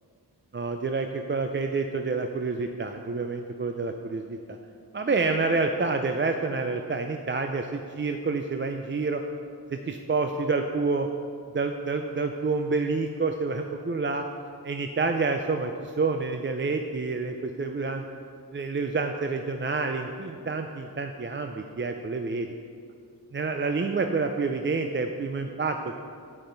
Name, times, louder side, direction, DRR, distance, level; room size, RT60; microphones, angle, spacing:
voice 1, 0.5-4.4 4.9-9.2 9.7-11.1 11.5-14.3 14.6-18.0 18.5-22.5 23.3-25.9, right 4 dB, 30° right, 5 dB, 0.4 m, -28 dB
9.7 x 8.8 x 3.9 m, 2.3 s
wide cardioid pair, 75°, 40 cm